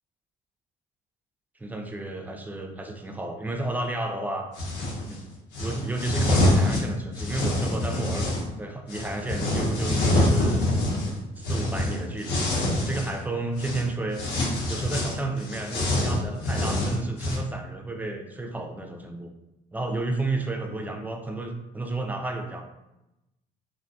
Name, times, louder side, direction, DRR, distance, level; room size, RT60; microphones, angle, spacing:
voice 1, 1.6-4.5 5.1-5.2 5.6-10.7 11.4-14.2 14.7-19.3 19.7-22.6, right 2 dB, 10° right, 4 dB, 0.3 m, -32 dB
sound 1, 4.6-5.0 5.5-8.4 8.9-13.2 13.6-13.8 14.2-17.4, left 1 dB, 80° left, 0.8 m, -25 dB
2.5 x 2.2 x 2.6 m, 0.93 s
cardioid pair, 110°, 17 cm